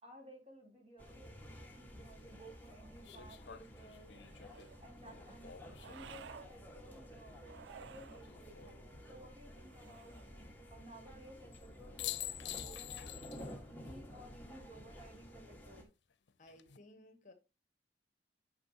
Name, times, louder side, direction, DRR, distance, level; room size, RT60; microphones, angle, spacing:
voice 1, 0.0-4.1 4.8-7.4 7.7-8.8 9.1-10.2 10.7-15.9, right 1 dB, 35° right, 3.4 m, -56 dB
sound 1, 1.0-15.8, equal, 10° left, 1.7 m, -53 dB
sound 2, 1.6-1.7 3.0-6.3 8.1-8.8 11.5-11.7 12.0-13.5 13.9-14.0 16.3-16.8, left 12 dB, 85° left, 0.6 m, -47 dB
sound 3, 4.0-4.9 5.8-6.5 7.4-8.3 9.6-10.4, right 7 dB, 85° right, 0.3 m, -55 dB
voice 2, 16.4-17.3, left 1 dB, 45° left, 1.2 m, -58 dB
8.9 x 6.4 x 2.8 m
head